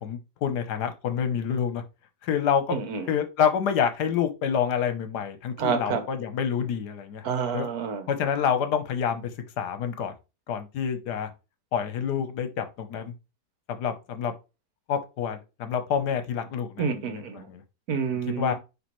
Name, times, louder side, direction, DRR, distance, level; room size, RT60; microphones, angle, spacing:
voice 1, 0.0-1.8 2.2-2.8 3.1-7.2 7.5-7.7 8.1-9.3 9.6-10.1 10.5-11.3 11.7-13.1 13.7-14.3 14.9-17.2 17.5-17.6 18.4-18.5, left 7 dB, 75° left, 1.4 m, -27 dB
voice 2, 2.7-3.1 5.6-6.1 7.2-8.1 16.8-17.5 17.9-18.5, right 6 dB, 65° right, 1.4 m, -28 dB
9.6 x 3.3 x 3.1 m
omnidirectional pair, 1.8 m